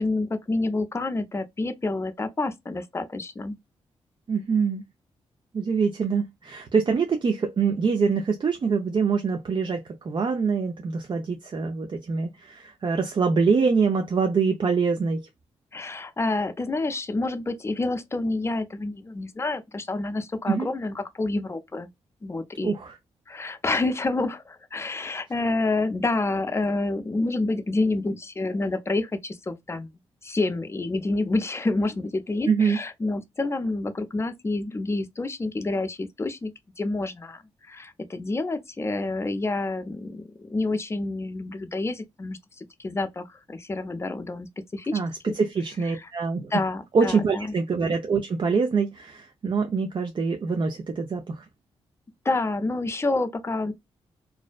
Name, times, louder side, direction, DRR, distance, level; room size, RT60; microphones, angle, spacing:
voice 1, 0.0-3.6 15.7-21.9 22.2-22.7 23.3-36.5 36.8-37.4 37.7-45.0 45.3-45.4 45.9-46.1 46.5-47.5 52.2-53.7, left 2 dB, 25° left, 0.5 m, -28 dB
voice 2, 4.3-4.8 5.5-15.3 20.5-20.7 22.6-22.9 32.5-32.8 44.9-46.5 46.9-51.4, right 5 dB, 45° right, 0.4 m, -24 dB
2.5 x 2.1 x 2.3 m
cardioid pair, 65°, 11 cm